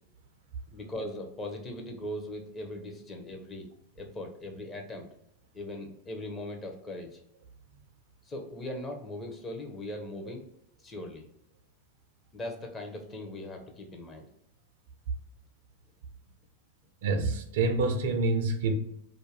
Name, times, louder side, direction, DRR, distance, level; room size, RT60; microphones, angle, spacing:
voice 1, 0.7-3.7 4.0-5.1 5.5-7.2 8.3-10.5 10.8-11.3 12.3-14.3, left 1 dB, 20° left, 2 dB, 0.6 m, -39 dB
voice 2, 17.0-18.7, right 3 dB, 55° right, 6 dB, 0.4 m, -27 dB
2.4 x 2.2 x 3.2 m, 0.73 s
figure-of-eight pair, 90°, 0 cm